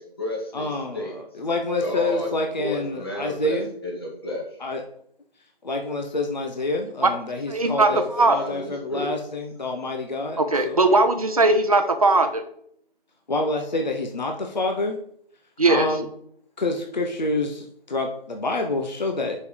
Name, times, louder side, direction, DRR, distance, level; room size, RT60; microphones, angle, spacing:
voice 1, 0.0-1.1 1.8-2.3 2.6-4.6 7.9-9.2, left 1 dB, 25° left, -2 dB, 1.8 m, -32 dB
voice 2, 0.5-3.7 4.6-4.8 5.6-8.0 8.3-11.0 13.3-15.0 15.7-16.1 16.6-19.4, left 2 dB, 45° left, 3 dB, 1.0 m, -27 dB
voice 3, 7.5-8.3 10.4-12.4 15.6-15.9, right 2 dB, 40° right, 7 dB, 0.7 m, -19 dB
5.9 x 5.4 x 4.8 m, 0.65 s
figure-of-eight pair, 175°, 30 cm